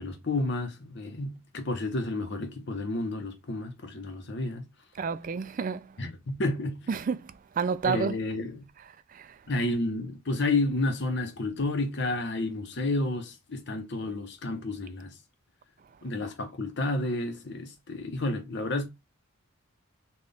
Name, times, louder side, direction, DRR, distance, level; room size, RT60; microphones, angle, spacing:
voice 1, 0.0-4.7 6.0-6.8 7.8-8.7 9.5-15.1 16.0-18.9, left 2 dB, 55° left, 0.8 m, -31 dB
voice 2, 5.0-5.9 6.9-8.2 9.1-9.3, right 5 dB, 40° right, 0.3 m, -30 dB
4.1 x 2.4 x 3.4 m
head